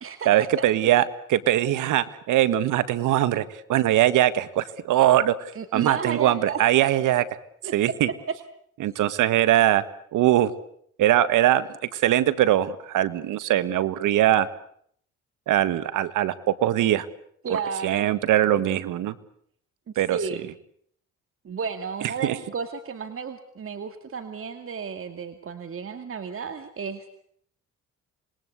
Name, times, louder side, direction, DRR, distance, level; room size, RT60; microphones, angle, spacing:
voice 1, 0.2-5.3 5.7-7.2 7.7-8.1 8.8-9.8 10.1-10.5 11.0-14.5 15.5-17.1 17.5-19.1 19.9-20.2 22.2-22.4, right 13 dB, 85° right, 15 dB, 1.7 m, -21 dB
voice 2, 5.5-6.6 7.6-7.7 17.4-18.1 20.1-20.5 21.4-27.0, right 6 dB, 45° right, 9 dB, 2.3 m, -32 dB
27.0 x 21.0 x 8.2 m, 0.66 s
cardioid pair, 90°, 30 cm